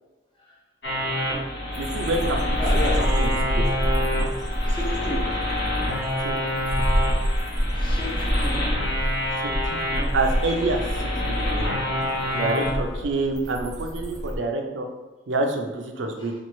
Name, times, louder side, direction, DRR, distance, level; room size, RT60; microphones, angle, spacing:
sound 1, 0.8-12.7, left 1 dB, 65° left, 1.0 m, -27 dB
sound 2, 1.7-14.3, equal, 20° right, 0.6 m, -27 dB
voice 1, 1.8-2.4 3.2-3.6 6.5-6.9 9.4-10.8 11.2-11.7 12.3-14.9 15.3-16.3, right 2 dB, 85° right, 3 dB, 0.5 m, -27 dB
voice 2, 2.5-3.0 4.7-5.2 7.7-8.7 16.2-16.3, left 1 dB, 25° left, -4 dB, 0.8 m, -32 dB
4.3 x 2.4 x 3.0 m, 1.1 s
head